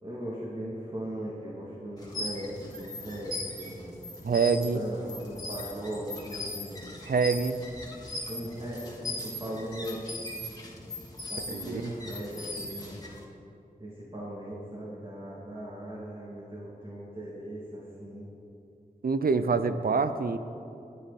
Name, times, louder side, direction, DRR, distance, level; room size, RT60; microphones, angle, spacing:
voice 1, 0.0-4.0 4.7-7.0 8.3-10.3 11.3-13.0 13.8-18.3, right 1 dB, 35° right, -6 dB, 2.7 m, -39 dB
sound 1, 2.0-13.2, left 2 dB, 25° left, 2.7 m, -39 dB
voice 2, 4.2-4.8 7.0-7.6 11.5-11.9 19.0-20.4, right 5 dB, 70° right, 11 dB, 0.7 m, -26 dB
20.5 x 9.3 x 4.3 m, 2.7 s
cardioid pair, 50°, 16 cm